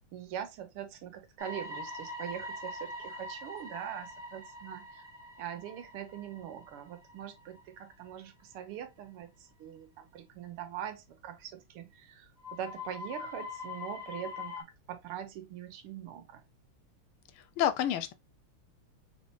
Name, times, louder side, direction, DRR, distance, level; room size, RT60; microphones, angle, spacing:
voice 1, 0.1-5.0 5.4-16.4, right 10 dB, 80° right, 1.8 m, -42 dB
sound 1, 1.4-8.1 8.5-8.6 9.0-9.1 12.4-14.6, left 2 dB, 10° right, 2.1 m, -43 dB
voice 2, 17.4-18.1, left 10 dB, 80° left, 1.5 m, -29 dB
4.2 x 3.8 x 3.1 m
omnidirectional pair, 2.4 m